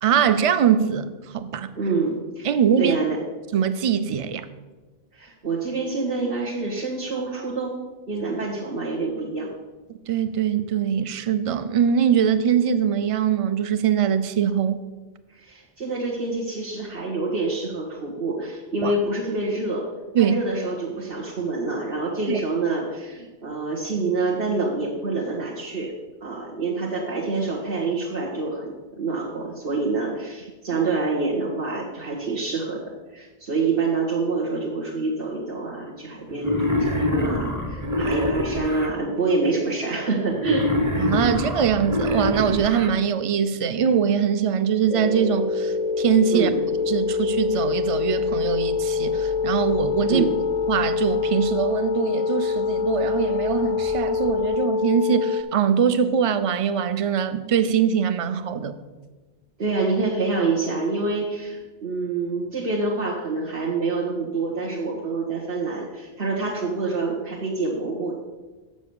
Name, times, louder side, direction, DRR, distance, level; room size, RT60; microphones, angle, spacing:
voice 1, 0.0-1.1 1.3-1.7 2.4-3.0 3.5-4.5 10.1-14.8 18.8-18.9 20.1-20.4 22.3-22.4 41.0-46.5 46.9-50.2 50.7-58.8, right 8 dB, 40° right, 0.5 m, -22 dB
voice 2, 1.8-3.2 5.1-7.8 8.1-9.5 15.3-19.9 20.2-25.9 26.2-32.8 33.1-40.7 46.3-46.6 50.1-50.4 59.6-68.2, right 3 dB, 80° right, 1.7 m, -27 dB
Wild animals, 36.4-38.9 40.4-42.9, left 1 dB, 20° right, 0.9 m, -25 dB
sound 1, 44.9-55.4, left 5 dB, 45° left, 0.5 m, -25 dB
7.2 x 6.8 x 6.9 m
omnidirectional pair, 1.0 m